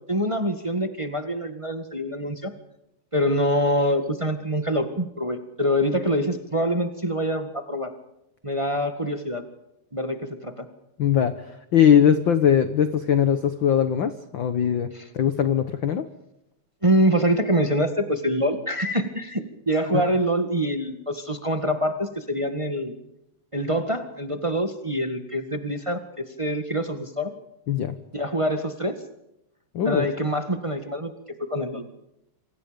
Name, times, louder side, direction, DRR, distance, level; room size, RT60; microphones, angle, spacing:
voice 1, 0.1-2.5 3.1-7.9 8.4-9.4 9.9-10.7 14.9-15.1 16.8-22.9 23.5-26.0 26.4-27.3 28.1-28.9 29.8-31.1 31.4-31.8, equal, 15° right, 7 dB, 1.0 m, -25 dB
voice 2, 11.0-11.3 11.7-14.9 15.1-16.1 19.9-20.0 27.7-27.9 29.7-30.1, left 8 dB, 65° left, 10 dB, 1.2 m, -20 dB
27.5 x 26.5 x 5.2 m, 0.85 s
omnidirectional pair, 3.7 m